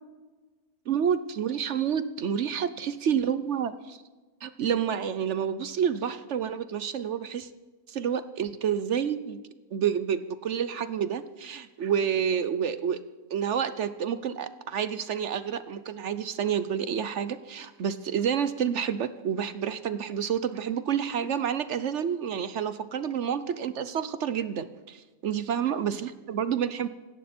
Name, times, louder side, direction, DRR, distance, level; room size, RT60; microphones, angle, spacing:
voice 1, 0.9-4.0 4.4-7.5 7.9-9.4 9.7-13.0 13.3-26.9, right 8 dB, 60° right, 13 dB, 0.9 m, -29 dB
26.5 x 11.0 x 4.3 m, 1.3 s
omnidirectional pair, 1.6 m